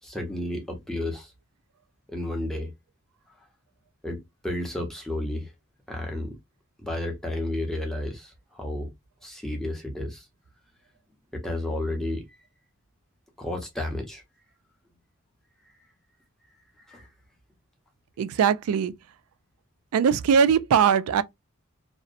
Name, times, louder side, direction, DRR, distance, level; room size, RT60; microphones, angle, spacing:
voice 1, 0.0-1.3 2.1-2.7 4.0-5.5 5.9-6.3 6.8-8.3 8.6-8.9 9.2-10.2 11.3-12.2 13.4-14.2 16.9-17.0, left 1 dB, ahead, 0.6 m, -31 dB
voice 2, 18.2-18.9 19.9-21.2, right 7 dB, 85° right, 0.3 m, -21 dB
2.6 x 2.0 x 2.4 m
head